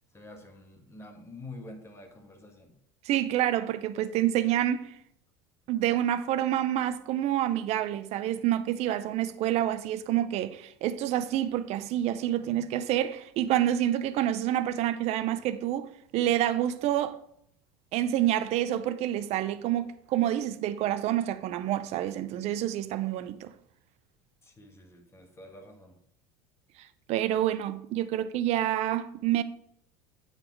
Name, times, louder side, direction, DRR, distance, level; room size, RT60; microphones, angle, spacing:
voice 1, 0.1-2.7 24.4-26.0, left 2 dB, 20° left, 1.6 m, -47 dB
voice 2, 3.0-4.9 5.7-17.2 17.9-23.5 27.1-29.4, right 12 dB, 55° right, 0.6 m, -28 dB
8.6 x 4.1 x 4.6 m
supercardioid pair, 95°, 13 cm